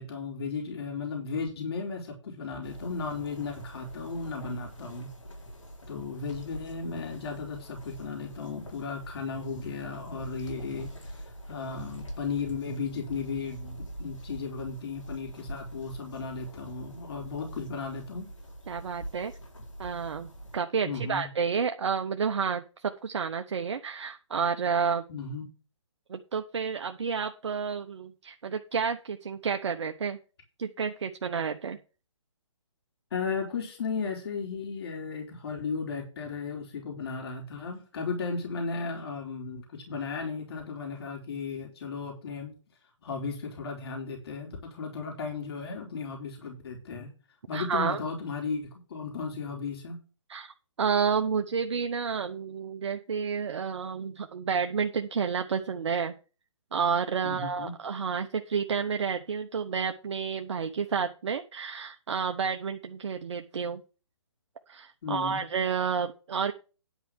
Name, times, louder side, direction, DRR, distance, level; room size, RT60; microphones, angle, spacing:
voice 1, 0.0-5.1 5.9-18.3 20.8-21.3 25.1-25.5 33.1-42.5 43.0-47.1 47.5-50.0 57.2-57.7 65.0-65.4, left 4 dB, 55° left, 1 dB, 3.4 m, -35 dB
sound 1, 2.6-20.6, equal, 85° left, 4.1 m, -44 dB
voice 2, 18.7-19.3 19.8-25.0 26.1-30.2 30.6-31.8 47.5-48.0 50.3-56.1 56.7-63.8 64.7-66.5, right 6 dB, 65° right, 6 dB, 0.9 m, -30 dB
10.5 x 4.7 x 7.1 m, 0.35 s
hypercardioid pair, 145°, 16 cm